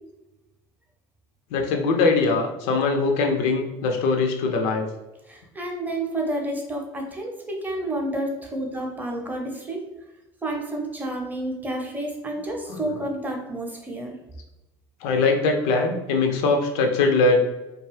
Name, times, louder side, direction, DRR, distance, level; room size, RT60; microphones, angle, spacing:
voice 1, 1.5-4.9 12.7-12.8 15.0-17.4, left 3 dB, 50° left, 3 dB, 0.4 m, -21 dB
voice 2, 5.2-9.8 10.4-14.1, right 1 dB, 10° right, 1 dB, 0.7 m, -30 dB
2.5 x 2.3 x 3.0 m, 0.99 s
figure-of-eight pair, 65°, 15 cm